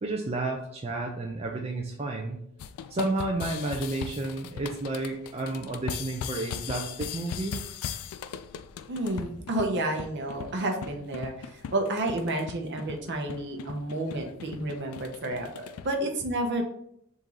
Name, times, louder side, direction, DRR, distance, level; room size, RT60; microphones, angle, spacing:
voice 1, 0.0-2.4 2.9-7.6, right 2 dB, 30° right, 0 dB, 0.4 m, -31 dB
sound 1, 2.6-15.9, left 8 dB, 75° left, 0.3 m, -39 dB
voice 2, 8.9-16.6, right 1 dB, 55° right, 2 dB, 0.8 m, -30 dB
3.7 x 2.7 x 4.6 m, 0.71 s
head